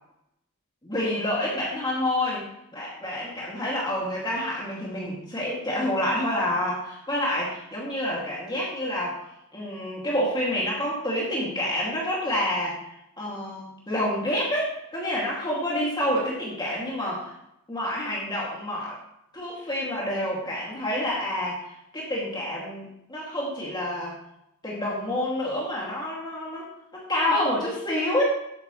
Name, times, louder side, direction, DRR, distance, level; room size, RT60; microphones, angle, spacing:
voice 1, 0.8-2.4 2.7-9.2 9.5-12.8 13.2-17.3 17.7-19.0 19.3-24.2 24.6-26.7 27.1-28.2, left 1 dB, 20° left, -5 dB, 2.4 m, -28 dB
11.5 x 8.8 x 3.2 m, 0.81 s
head